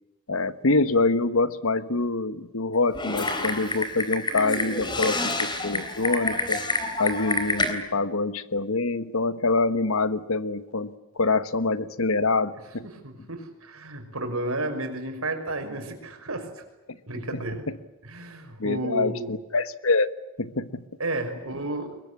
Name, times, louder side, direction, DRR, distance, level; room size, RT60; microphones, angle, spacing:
voice 1, 0.3-6.6 7.0-12.9 17.7-17.8 18.6-20.1 20.4-20.8, left 3 dB, 75° left, 14 dB, 1.4 m, -25 dB
Typing, 2.9-7.7, left 2 dB, 20° left, 3.6 m, -28 dB
voice 2, 12.9-16.6 17.1-17.6 18.0-19.3 21.0-22.0, right 2 dB, 85° right, 5 dB, 5.8 m, -32 dB
23.0 x 22.0 x 9.8 m, 1.0 s
head